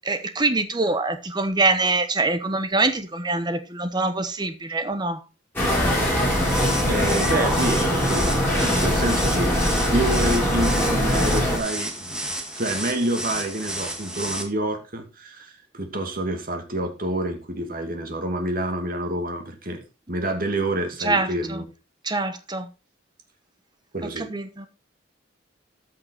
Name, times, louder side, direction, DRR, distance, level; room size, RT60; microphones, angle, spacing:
voice 1, 0.1-5.2 21.0-21.6 22.0-22.7 24.2-24.7, right 3 dB, 20° right, 1.1 m, -24 dB
sound 1, 5.6-11.6, equal, 10° left, 4.1 m, -22 dB
sound 2, 6.3-14.4, right 1 dB, 5° right, 1.8 m, -32 dB
voice 2, 6.8-8.3 8.7-19.8 20.1-21.6 23.9-24.3, right 1 dB, 50° right, 2.3 m, -28 dB
14.0 x 5.9 x 4.2 m
head